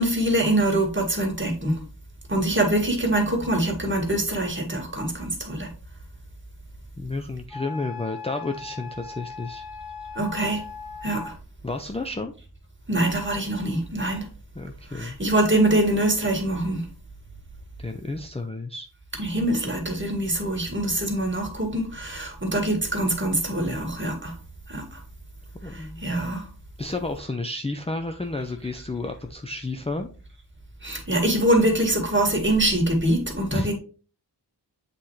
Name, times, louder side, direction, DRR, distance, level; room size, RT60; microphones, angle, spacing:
voice 1, 0.0-1.8 2.3-5.7 10.2-10.6 11.0-11.3 12.9-14.3 14.9-16.9 19.2-24.4 24.7-25.0 25.6-26.5 30.8-33.7, right 1 dB, 25° right, 1.9 m, -24 dB
voice 2, 7.0-9.6 11.6-12.3 14.6-15.2 17.8-18.9 25.6-26.0 26.8-30.1 33.5-33.7, left 2 dB, 15° left, 0.5 m, -31 dB
Wind instrument woodwind instrument, 7.5-11.4, left 5 dB, 55° left, 2.2 m, -39 dB
7.6 x 4.3 x 3.2 m
wide cardioid pair, 60°, 42 cm